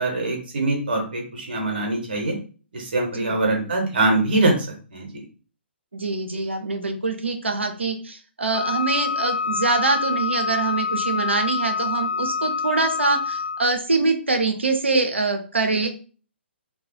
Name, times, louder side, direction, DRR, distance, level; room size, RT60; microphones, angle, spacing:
voice 1, 0.0-2.4 2.7-4.7 4.9-5.1, right 2 dB, 50° right, 1 dB, 0.8 m, -23 dB
voice 2, 5.9-15.9, right 3 dB, 75° right, 5 dB, 0.5 m, -24 dB
Wind instrument woodwind instrument, 8.5-13.7, left 5 dB, 65° left, 0.4 m, -26 dB
2.2 x 2.1 x 2.8 m, 0.37 s
figure-of-eight pair, 130°, 6 cm